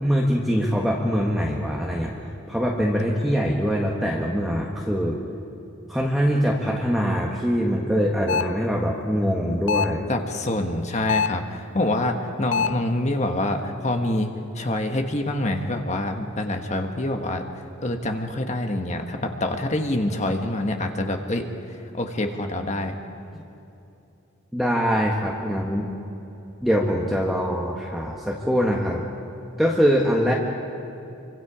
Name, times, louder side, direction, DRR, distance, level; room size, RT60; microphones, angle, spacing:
voice 1, 0.0-2.1 2.5-5.2 5.9-10.1 23.3-23.4 24.5-25.9 26.6-29.0 29.6-30.3, equal, ahead, -3 dB, 1.5 m, -23 dB
sound 1, 8.3-8.6 9.7-10.0 11.1-11.5 12.5-12.9, left 6 dB, 60° left, 0.4 m, -24 dB
voice 2, 10.1-14.3 14.5-17.4 17.8-21.5 21.9-22.9 30.3-30.4, left 1 dB, 35° left, 4 dB, 1.5 m, -26 dB
27.0 x 24.5 x 5.0 m, 2.8 s
head